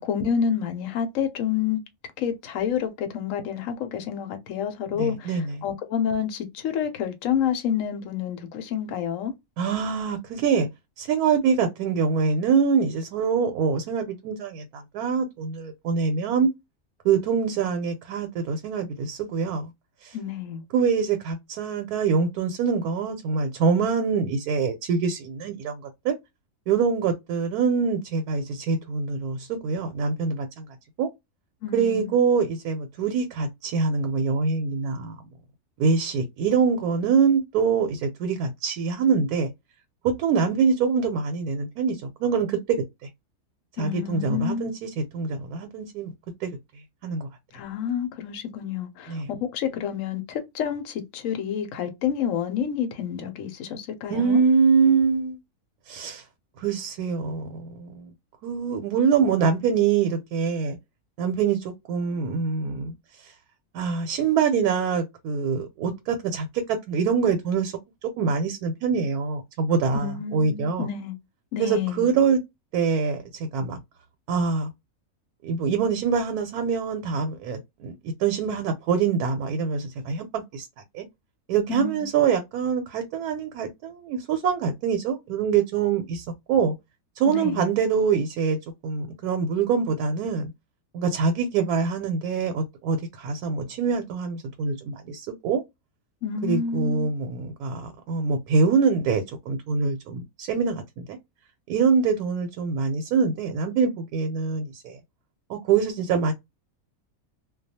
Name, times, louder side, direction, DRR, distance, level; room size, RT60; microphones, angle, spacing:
voice 1, 0.0-1.8 2.2-9.3 20.1-20.6 31.6-32.1 43.8-44.7 47.5-54.4 69.9-71.2 71.5-72.1 81.7-82.1 87.3-87.7 96.2-97.1, left 8 dB, 70° left, 0.9 m, -29 dB
voice 2, 5.0-5.6 9.6-10.7 11.0-16.5 17.0-19.7 20.0-20.2 20.7-26.1 26.7-30.6 31.0-31.1 31.7-35.2 35.8-39.5 40.0-42.8 43.8-46.1 46.4-46.6 47.0-47.3 49.1-49.3 54.1-55.4 55.9-56.2 56.6-58.1 58.4-60.8 61.2-62.9 63.2-63.3 63.7-67.7 68.2-70.9 71.6-72.4 72.7-73.8 74.3-74.7 75.4-80.7 80.9-81.1 81.5-86.7 87.2-88.6 88.8-90.5 90.9-95.6 96.4-101.2 101.7-105.0 105.5-106.3, right 5 dB, 85° right, 1.1 m, -24 dB
2.3 x 2.2 x 2.6 m
omnidirectional pair, 1.6 m